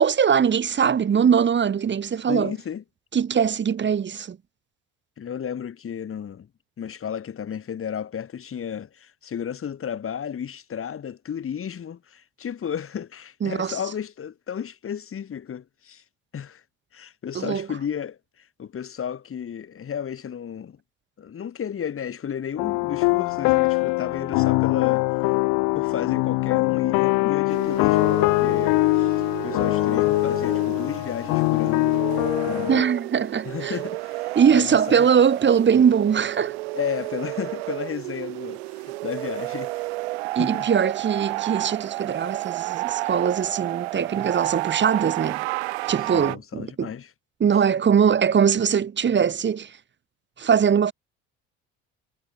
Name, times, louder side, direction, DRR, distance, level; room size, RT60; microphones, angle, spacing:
voice 1, 0.0-2.5 3.1-4.4 13.4-13.8 17.3-17.7 32.7-33.8 34.3-36.6 40.3-45.4 45.9-46.9 47.4-49.7 50.4-50.9, right 7 dB, 35° right, 1.4 m, -21 dB
voice 2, 2.3-2.8 5.2-6.5 6.8-16.0 16.3-16.6 16.9-20.8 21.2-25.1 25.7-31.9 32.4-32.9 33.5-35.1 36.7-39.9 40.4-40.7 46.1-47.1, left 8 dB, 45° left, 3.4 m, -33 dB
sound 1, 22.6-32.8, left 28 dB, 75° left, 1.2 m, -22 dB
sound 2, 27.5-46.4, right 21 dB, 90° right, 6.1 m, -31 dB
supercardioid pair, 70°, 32 cm